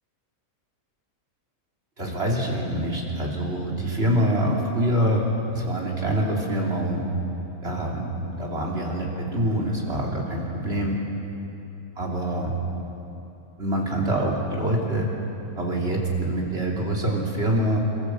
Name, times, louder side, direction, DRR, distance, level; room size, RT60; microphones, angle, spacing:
voice 1, 2.0-5.2 5.5-7.0 7.6-8.1 8.4-11.0 12.0-12.5 13.6-15.1 15.6-17.8, right 1 dB, 45° right, -2 dB, 3.4 m, -25 dB
27.5 x 14.5 x 7.7 m, 3.0 s
omnidirectional pair, 1.5 m